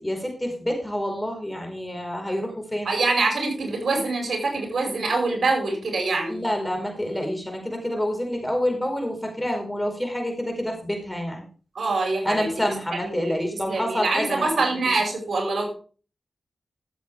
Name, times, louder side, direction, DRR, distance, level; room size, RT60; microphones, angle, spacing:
voice 1, 0.0-2.9 6.3-11.4 12.2-14.5 14.9-15.0, equal, 10° left, 2 dB, 4.8 m, -28 dB
voice 2, 2.8-6.4 11.7-12.5 13.1-15.7, right 3 dB, 70° right, 1 dB, 5.5 m, -25 dB
14.5 x 8.0 x 3.5 m, 0.38 s
cardioid pair, 60°, 0 cm